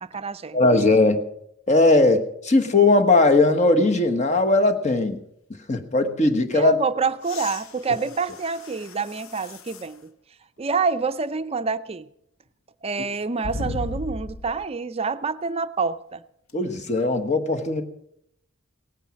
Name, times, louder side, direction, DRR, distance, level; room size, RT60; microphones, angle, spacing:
voice 1, 0.0-0.6 6.5-10.1 10.6-12.1 12.8-16.2, right 4 dB, 30° right, 12 dB, 0.5 m, -27 dB
voice 2, 0.5-1.2 1.7-5.2 5.7-6.7 16.5-17.8, left 2 dB, 35° left, 6 dB, 1.2 m, -19 dB
sound 1, 7.2-10.0 10.6-10.7 13.4-14.7 16.5-16.6, left 2 dB, 75° left, 0.8 m, -36 dB
18.0 x 9.0 x 6.3 m, 0.75 s
head